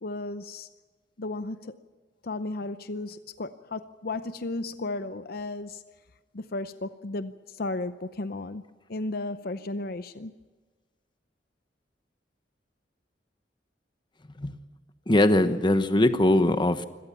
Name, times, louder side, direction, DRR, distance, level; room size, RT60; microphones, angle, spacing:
voice 1, 0.0-0.7 1.2-1.7 2.2-5.8 6.3-8.6 8.9-10.3, left 2 dB, 60° left, 0.7 m, -34 dB
voice 2, 15.1-16.8, left 1 dB, 25° left, 1.1 m, -21 dB
25.0 x 18.0 x 7.1 m
head